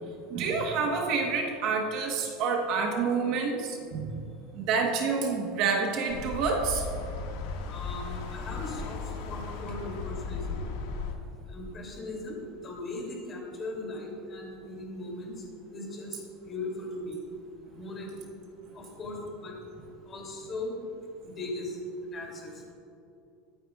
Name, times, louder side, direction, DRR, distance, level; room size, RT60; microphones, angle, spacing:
voice 1, 0.3-4.1 4.5-6.9, right 5 dB, 45° right, 2 dB, 1.2 m, -28 dB
sound 1, 6.1-11.1, left 4 dB, 70° left, 1.8 m, -36 dB
voice 2, 7.6-9.0 9.3-10.6 11.5-15.3 15.7-17.2 17.7-18.1 18.7-19.5 20.1-20.7 21.2-21.8 22.1-22.5, left 2 dB, 25° left, -1 dB, 2.8 m, -38 dB
22.5 x 9.4 x 2.4 m, 2.7 s
supercardioid pair, 160°, 0 cm